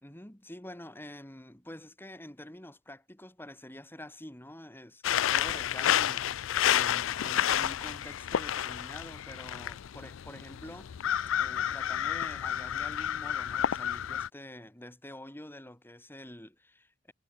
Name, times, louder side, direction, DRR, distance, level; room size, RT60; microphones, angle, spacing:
voice 1, 0.0-10.9 11.4-17.1, left 1 dB, 10° left, 2.3 m, -47 dB
sound 1, 5.0-14.3, left 10 dB, 85° left, 0.4 m, -30 dB
head